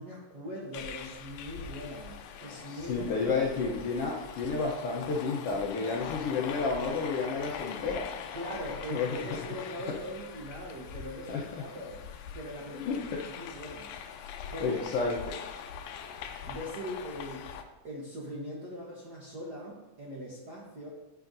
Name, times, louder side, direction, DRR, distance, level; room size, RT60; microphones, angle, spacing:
voice 1, 0.0-3.4 8.3-12.0 12.3-13.0 13.4-13.9 14.5-14.8 16.5-17.6 17.8-20.9, equal, 55° right, -5 dB, 1.1 m, -41 dB
sound 1, 0.7-17.6, left 7 dB, 90° left, 2.1 m, -42 dB
voice 2, 2.6-8.1 8.9-9.1 11.3-11.4 12.7-13.2 14.6-15.4, left 4 dB, 70° left, -1 dB, 1.5 m, -31 dB
11.0 x 6.6 x 2.6 m, 1.1 s
omnidirectional pair, 3.4 m